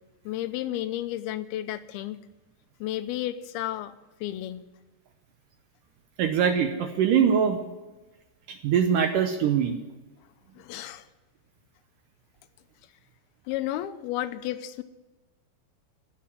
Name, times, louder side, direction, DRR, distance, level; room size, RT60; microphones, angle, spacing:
voice 1, 0.3-2.2 2.8-3.9 4.2-4.6 10.6-11.1 13.5-14.8, left 13 dB, 80° left, 11 dB, 2.5 m, -32 dB
voice 2, 6.2-7.7 8.5-9.8, right 7 dB, 70° right, 6 dB, 2.1 m, -23 dB
16.5 x 7.7 x 9.9 m, 1.1 s
omnidirectional pair, 4.6 m